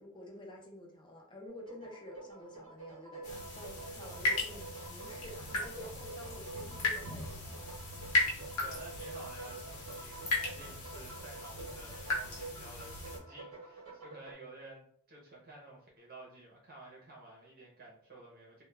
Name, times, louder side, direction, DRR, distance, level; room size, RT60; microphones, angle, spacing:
voice 1, 0.0-7.9, left 1 dB, 20° left, 0 dB, 0.5 m, -50 dB
sound 1, 1.5-14.3, right 3 dB, 90° right, 0.9 m, -48 dB
sound 2, 3.2-13.2, left 2 dB, 80° left, 0.8 m, -37 dB
voice 2, 5.4-5.9 8.6-18.6, right 2 dB, 40° right, -3 dB, 0.7 m, -52 dB
2.2 x 2.2 x 3.1 m, 0.62 s
head